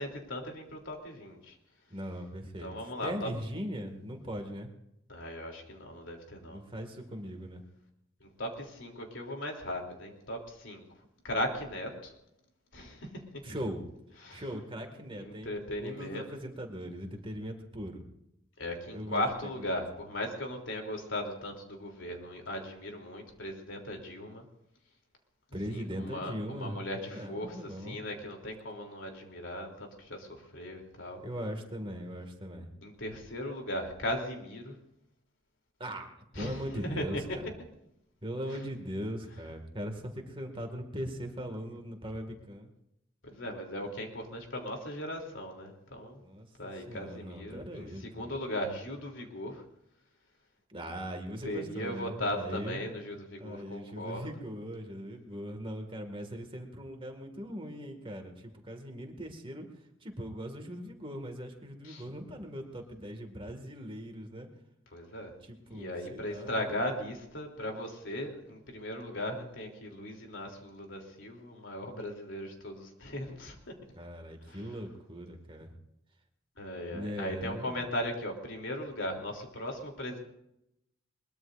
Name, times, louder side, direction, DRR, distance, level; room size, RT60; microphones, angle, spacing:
voice 1, 0.0-1.6 2.6-3.3 5.1-6.6 8.2-10.8 11.2-12.1 12.7-13.4 14.2-14.4 15.2-16.2 18.6-24.4 25.7-31.2 32.8-34.7 36.3-37.2 43.2-46.2 46.6-49.6 51.4-54.3 61.8-62.0 64.9-65.3 65.7-73.7 74.4-74.7 76.6-80.2, left 1 dB, 65° left, 2 dB, 3.3 m, -38 dB
voice 2, 1.9-2.7 3.0-4.7 6.5-7.6 13.4-13.8 14.3-18.0 18.9-19.2 19.6-19.7 25.5-26.8 27.1-28.0 31.2-32.7 35.8-37.5 38.2-42.7 46.2-48.3 50.7-52.8 53.4-59.6 60.0-64.5 65.4-66.7 74.0-75.7 76.9-77.7, equal, 25° right, 4 dB, 2.1 m, -40 dB
22.0 x 21.5 x 2.6 m, 0.83 s
head